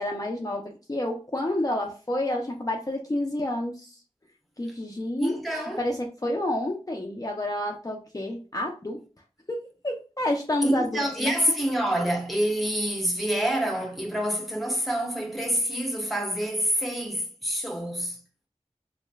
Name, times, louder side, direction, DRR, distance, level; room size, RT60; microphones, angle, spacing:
voice 1, 0.0-4.0 4.6-9.0 9.5-11.4, left 1 dB, 30° left, 0.5 m, -29 dB
voice 2, 5.2-5.8 10.6-18.2, equal, ahead, 0.9 m, -27 dB
3.2 x 3.1 x 2.3 m
wide cardioid pair, 40°, 12 cm